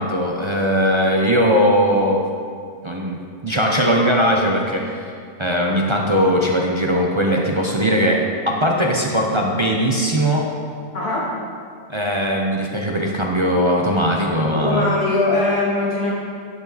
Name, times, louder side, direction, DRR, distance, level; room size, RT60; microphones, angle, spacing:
voice 1, 0.0-2.2 2.8-4.9 5.4-10.5 11.9-14.8, equal, 35° right, -1 dB, 0.4 m, -19 dB
voice 2, 10.9-11.3 14.5-16.1, left 2 dB, 70° left, -6 dB, 2.1 m, -20 dB
9.6 x 9.0 x 4.1 m, 2.3 s
omnidirectional pair, 1.7 m